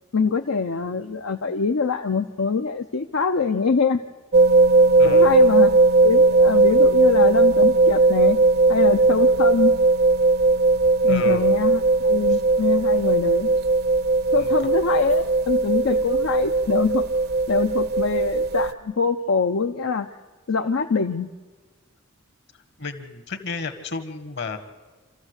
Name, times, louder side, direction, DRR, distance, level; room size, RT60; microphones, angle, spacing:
voice 1, 0.1-4.0 5.0-8.4 8.7-9.7 11.0-13.5 14.3-17.0 17.5-20.1 20.5-21.3, left 5 dB, 80° left, 5 dB, 0.7 m, -24 dB
sound 1, 4.3-18.7, right 3 dB, 50° right, 0.6 m, -18 dB
voice 2, 5.0-5.3 11.1-11.4 12.3-12.4 14.4-14.5 22.8-24.6, left 4 dB, 55° left, 10 dB, 1.7 m, -32 dB
27.5 x 14.0 x 8.1 m, 1.3 s
head